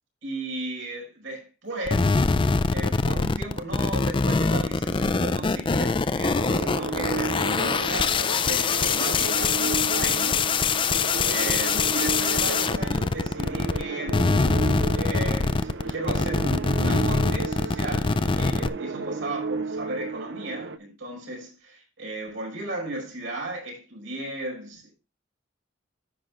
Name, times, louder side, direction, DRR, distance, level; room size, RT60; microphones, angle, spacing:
voice 1, 0.2-2.2 2.7-11.0 11.3-14.5 14.9-24.9, right 1 dB, 80° right, 5.3 m, -35 dB
sound 1, 1.9-13.8 14.1-18.7, left 4 dB, 25° left, 0.4 m, -24 dB
sound 2, 6.3-20.8, right 4 dB, 60° right, 0.6 m, -33 dB
15.0 x 6.0 x 2.4 m
head